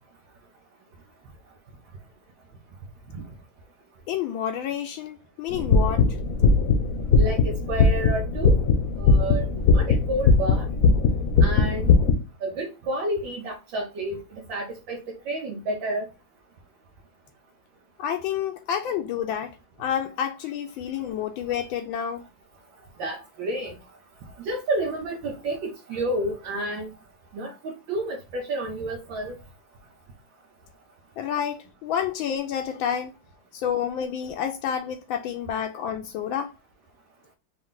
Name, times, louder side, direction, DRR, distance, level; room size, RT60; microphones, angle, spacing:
voice 1, 4.1-6.1 18.0-22.2 31.2-33.1 33.5-36.5, left 9 dB, 80° left, 1.3 m, -29 dB
sound 1, 5.5-12.1, left 4 dB, 60° left, 1.0 m, -20 dB
voice 2, 7.2-8.6 9.0-10.7 11.4-11.9 12.4-16.1 23.0-23.8 24.4-26.9 27.3-29.4, right 1 dB, 75° right, 1.6 m, -30 dB
5.2 x 2.6 x 3.7 m
omnidirectional pair, 2.1 m